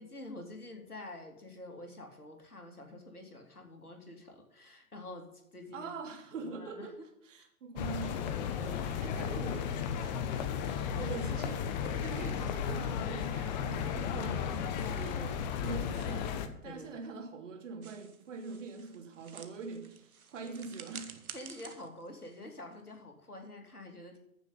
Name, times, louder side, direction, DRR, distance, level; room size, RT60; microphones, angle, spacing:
voice 1, 0.0-5.9 6.3-6.9 8.6-9.6 16.6-17.1 21.3-24.2, left 2 dB, 90° left, 3.0 m, -48 dB
voice 2, 5.7-7.0 7.3-8.3 9.0-9.7 10.0-10.2 10.6-21.2, right 4 dB, 55° right, 2.9 m, -43 dB
sound 1, 7.8-16.5, left 8 dB, 30° left, 1.0 m, -34 dB
sound 2, 17.8-23.1, right 6 dB, 75° right, 1.5 m, -51 dB
15.0 x 7.1 x 5.6 m
figure-of-eight pair, 120°, 43 cm